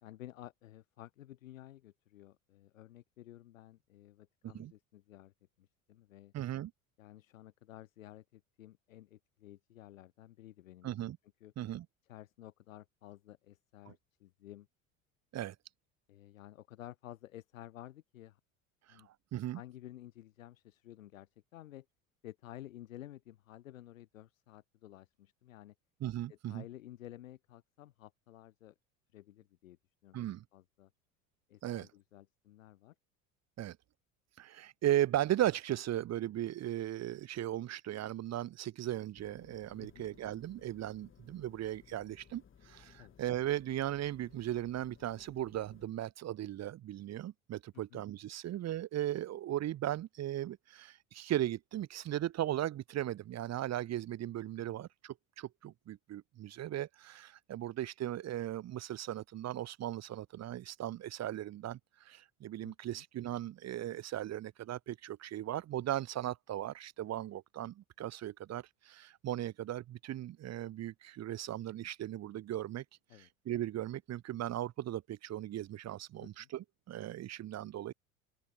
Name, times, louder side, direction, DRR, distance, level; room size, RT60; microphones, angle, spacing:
voice 1, 0.0-6.3 7.0-10.9 11.4-11.5 12.1-14.7 16.1-18.4 18.9-19.1 19.5-21.9 22.2-25.7 26.3-28.7 29.1-29.8 30.0-30.2 30.5-30.9 31.5-32.9 39.8-40.1 43.0-43.2 47.7-48.0 54.7-54.9 62.6-63.0 73.1-73.3 76.2-76.5, left 13 dB, 65° left, 2.6 m, -53 dB
voice 2, 6.3-6.7 10.8-11.2 11.6-11.9 13.9-14.0 15.3-15.5 18.9-19.6 26.0-26.6 30.1-30.4 31.6-31.9 33.6-33.8 34.4-72.8 73.2-77.9, right 13 dB, 35° right, 2.4 m, -37 dB
sound 1, 39.1-45.9, left 7 dB, 30° left, 5.9 m, -61 dB
open air
figure-of-eight pair, 70°, 42 cm